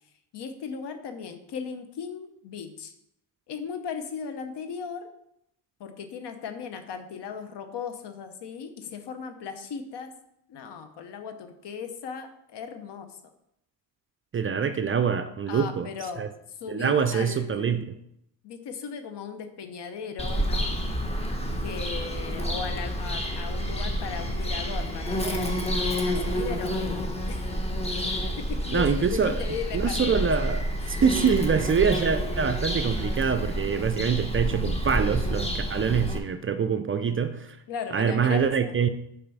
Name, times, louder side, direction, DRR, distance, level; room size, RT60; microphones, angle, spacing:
voice 1, 0.3-2.9 3.5-5.1 5.8-10.1 10.5-13.2 15.5-17.8 18.4-20.8 21.6-25.6 26.0-27.5 28.4-30.3 31.0-31.4 37.7-38.7, left 6 dB, 70° left, 8 dB, 0.9 m, -37 dB
voice 2, 14.3-15.9 16.2-16.3 16.7-17.9 28.7-29.4 29.7-30.6 31.0-37.6 37.9-38.9, right 6 dB, 30° right, 9 dB, 0.4 m, -25 dB
Bird vocalization bird call bird song, 20.2-36.2, equal, 15° left, 1.0 m, -29 dB
5.5 x 4.1 x 5.5 m, 0.77 s
cardioid pair, 90°, 43 cm